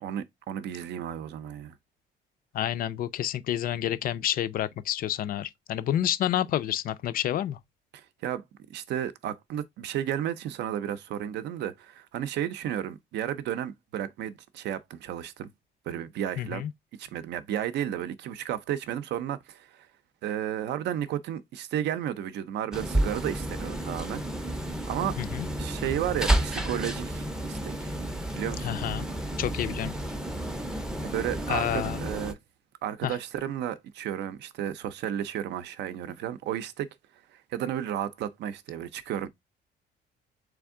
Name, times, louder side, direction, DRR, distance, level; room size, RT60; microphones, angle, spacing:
voice 1, 0.0-1.7 7.9-8.4 8.7-15.5 15.9-16.7 17.0-19.9 20.2-24.2 24.9-25.2 25.5-28.0 28.3-28.8 31.0-32.4 32.8-36.9 37.3-39.3, right 10 dB, 70° right, 0.5 m, -33 dB
voice 2, 2.5-7.6 16.4-16.7 25.2-25.5 28.6-29.1 29.4-29.9 31.5-32.0 33.0-33.2, left 11 dB, 50° left, 0.4 m, -29 dB
sound 1, 22.7-32.3, right 1 dB, 5° right, 0.5 m, -31 dB
3.5 x 3.4 x 3.5 m
cardioid pair, 155°, 19 cm